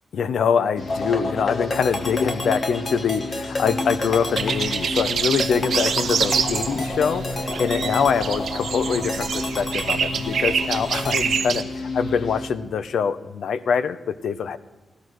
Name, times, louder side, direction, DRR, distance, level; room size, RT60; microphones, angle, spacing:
voice 1, 0.1-11.6 11.9-14.6, left 6 dB, 80° left, 14 dB, 0.7 m, -24 dB
sound 1, 0.8-12.5, left 2 dB, 65° left, 2.0 m, -32 dB
sound 2, 0.9-11.2, left 2 dB, 35° left, 1.3 m, -31 dB
sound 3, 4.3-11.6, right 7 dB, 75° right, 1.1 m, -26 dB
15.5 x 13.0 x 6.3 m, 1.2 s
wide cardioid pair, 150°, 0 cm